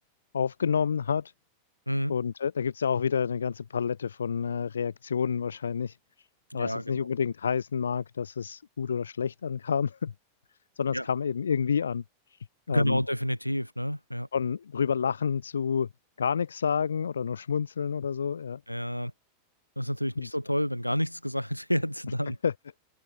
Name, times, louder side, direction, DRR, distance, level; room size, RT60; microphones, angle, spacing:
voice 1, 0.3-1.3 2.1-6.0 6.5-10.1 10.8-12.0 12.7-13.0 14.3-15.9 16.2-18.6 20.2-20.3 22.4-22.5, left 7 dB, 70° left, 2.3 m, -29 dB
voice 2, 6.5-7.1 10.9-11.1 12.7-14.3 18.7-19.1 19.8-22.4, equal, 90° left, 3.6 m, -29 dB
figure-of-eight pair, 90°, 0 cm